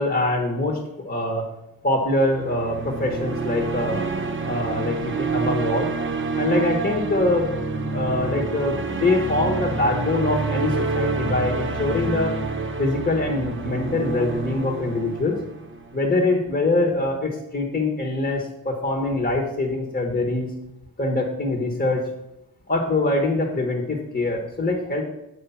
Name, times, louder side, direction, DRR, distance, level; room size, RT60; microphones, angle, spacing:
voice 1, 0.0-1.5 1.8-4.1 4.4-5.9 6.4-7.5 7.9-12.3 12.8-15.4 15.9-20.5 21.0-22.1 22.7-25.0, left 2 dB, 25° left, 1 dB, 1.3 m, -24 dB
sound 1, 2.1-16.3, right 4 dB, 30° right, 0.8 m, -28 dB
8.3 x 4.9 x 5.7 m, 0.87 s
cardioid pair, 95°, 38 cm